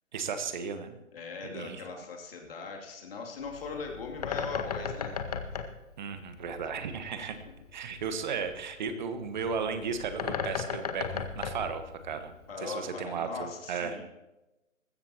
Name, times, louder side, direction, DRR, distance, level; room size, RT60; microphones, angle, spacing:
voice 1, 0.1-1.0 1.4-2.0 6.0-7.3 7.7-12.3 12.6-14.1, right 6 dB, 35° right, 8 dB, 1.4 m, -35 dB
voice 2, 1.1-5.2 12.5-14.0, left 4 dB, 45° left, 0 dB, 2.8 m, -39 dB
Bird, 3.4-12.5, left 6 dB, 30° left, 0.9 m, -37 dB
19.5 x 15.5 x 3.0 m, 1.0 s
figure-of-eight pair, 145°, 40 cm